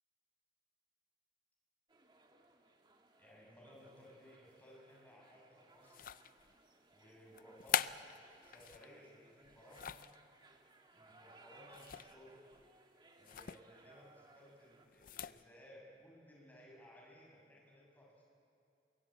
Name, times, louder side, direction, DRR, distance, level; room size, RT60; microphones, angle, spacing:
sound 1, 1.9-14.9, right 2 dB, 25° right, 1.7 m, -64 dB
voice 1, 3.2-6.1 6.9-8.0 8.4-10.0 10.9-12.4 13.2-18.3, equal, 10° left, -3 dB, 7.1 m, -60 dB
sound 2, 5.9-6.5 7.4-8.9 9.4-10.2 11.7-12.2 12.5-12.7 13.2-13.6 14.9-15.4, left 9 dB, 50° left, 0.5 m, -41 dB
24.5 x 22.0 x 8.7 m, 2.6 s
head